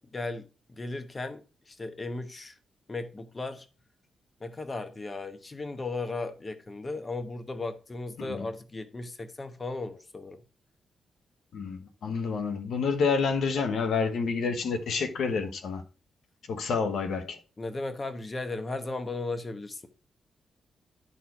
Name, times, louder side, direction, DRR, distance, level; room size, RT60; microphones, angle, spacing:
voice 1, 0.1-0.4 0.7-2.5 2.9-3.7 4.4-10.4 17.6-19.9, left 3 dB, 30° left, 1.1 m, -36 dB
voice 2, 11.5-15.8 16.5-17.4, left 5 dB, 75° left, 1.0 m, -29 dB
11.0 x 4.3 x 4.7 m
cardioid pair, 75°, 0 cm